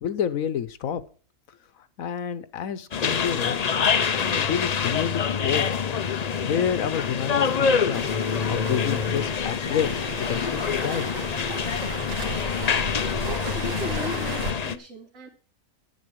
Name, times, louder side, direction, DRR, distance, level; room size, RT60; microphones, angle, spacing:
voice 1, 0.0-1.0 2.0-3.6 4.2-5.7 6.4-8.1 8.5-11.1, left 8 dB, 70° left, 14 dB, 1.2 m, -29 dB
sound 1, 2.9-14.8, left 6 dB, 50° left, 0.5 m, -26 dB
Waves surf, 7.9-14.5, right 1 dB, 75° right, 2.3 m, -35 dB
voice 2, 13.2-15.3, equal, 60° right, -4 dB, 3.1 m, -37 dB
11.0 x 9.2 x 4.7 m, 0.41 s
omnidirectional pair, 1.5 m